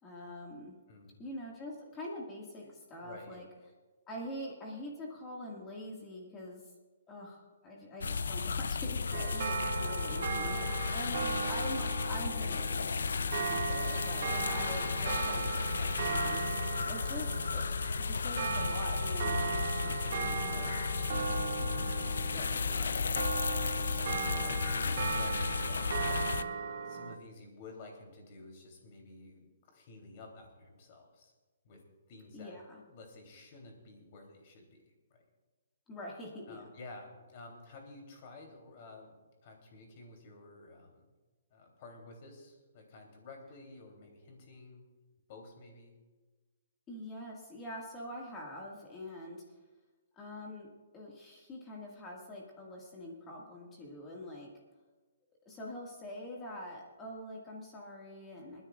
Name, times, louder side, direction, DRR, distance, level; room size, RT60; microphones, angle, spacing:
voice 1, 0.0-0.8 1.2-3.5 4.1-6.6 7.1-16.4 16.9-20.7 32.3-32.8 35.9-36.7 46.9-49.4 50.1-54.5 55.5-58.6, left 1 dB, 15° left, -2 dB, 1.9 m, -44 dB
voice 2, 0.9-1.2 2.6-2.7 3.0-3.5 9.1-9.3 9.8-9.9 16.7-17.0 21.4-31.3 31.6-31.8 32.1-32.6 32.8-35.2 36.5-41.1 41.5-44.9 45.3-46.0, left 3 dB, 35° left, 1 dB, 3.1 m, -52 dB
sound 1, 8.0-26.4, left 5 dB, 90° left, 0.5 m, -34 dB
sound 2, 9.1-27.2, right 6 dB, 50° right, 0.7 m, -37 dB
29.0 x 10.0 x 2.4 m, 1.2 s
hypercardioid pair, 165°, 0 cm